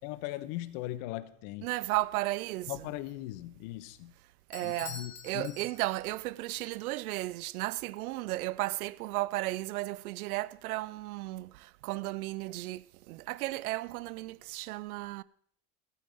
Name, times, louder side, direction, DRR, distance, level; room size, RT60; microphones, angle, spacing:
voice 1, 0.0-1.7 2.7-4.1 4.6-5.5, left 16 dB, 55° left, 1.2 m, -39 dB
voice 2, 1.6-2.9 4.5-15.2, right 18 dB, 70° right, 0.7 m, -34 dB
Bell / Doorbell, 4.5-6.2, left 6 dB, 85° left, 1.7 m, -46 dB
15.5 x 14.0 x 3.6 m
hypercardioid pair, 85°, 46 cm